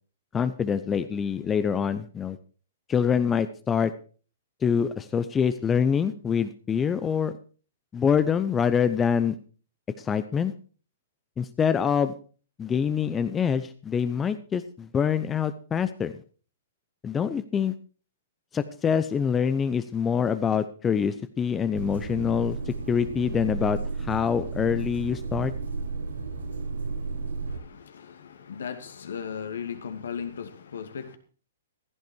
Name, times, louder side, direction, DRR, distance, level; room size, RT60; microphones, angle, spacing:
voice 1, 0.3-2.4 2.9-3.9 4.6-7.3 7.9-9.3 10.0-10.5 11.4-12.1 12.6-16.1 17.0-17.7 18.5-25.5, left 7 dB, 15° left, 0.8 m, -25 dB
sound 1, 21.7-27.6, right 4 dB, 85° right, 4.9 m, -33 dB
voice 2, 27.4-31.2, left 7 dB, 75° left, 2.5 m, -37 dB
15.5 x 12.0 x 4.6 m
hypercardioid pair, 130°, 0 cm